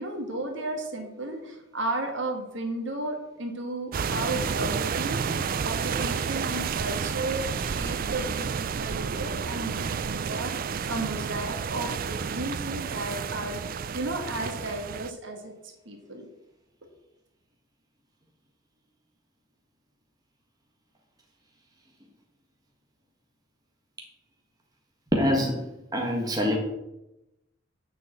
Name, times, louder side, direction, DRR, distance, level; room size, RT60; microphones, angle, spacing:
voice 1, 0.0-13.6 13.9-15.5 15.9-16.3, right 2 dB, 60° right, 2 dB, 1.9 m, -34 dB
sound 1, 3.9-15.1, right 6 dB, 45° right, 0.4 m, -30 dB
voice 2, 25.1-26.6, left 1 dB, 20° right, 0 dB, 1.5 m, -25 dB
6.9 x 6.7 x 7.8 m, 0.91 s
head